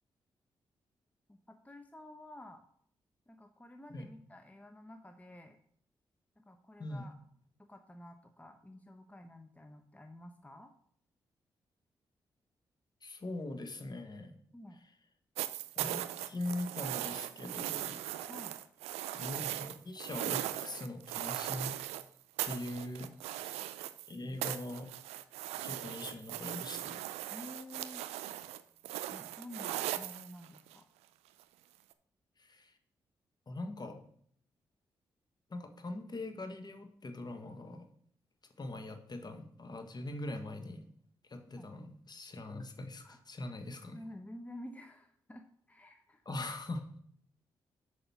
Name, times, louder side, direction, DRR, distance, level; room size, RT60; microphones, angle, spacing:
voice 1, 1.3-2.6 3.3-5.6 6.4-7.1 7.7-10.7 14.5-14.8 18.3-18.6 23.1-23.2 27.3-28.1 29.1-30.9 41.6-41.7 43.0-43.2 43.9-46.2, left 1 dB, 15° left, 6 dB, 0.8 m, -51 dB
voice 2, 13.0-14.4 15.7-18.0 19.1-21.7 22.4-23.7 24.1-24.9 25.6-27.0 32.4-32.7 33.5-34.0 35.5-37.9 38.6-40.8 41.2-44.0 46.2-46.9, left 2 dB, 40° left, 7 dB, 1.4 m, -42 dB
sound 1, 15.4-22.0 22.4-24.1 24.4-30.7 31.9-32.0, right 14 dB, 85° right, 0.4 m, -39 dB
6.9 x 4.9 x 5.8 m, 0.63 s
hypercardioid pair, 40°, 10 cm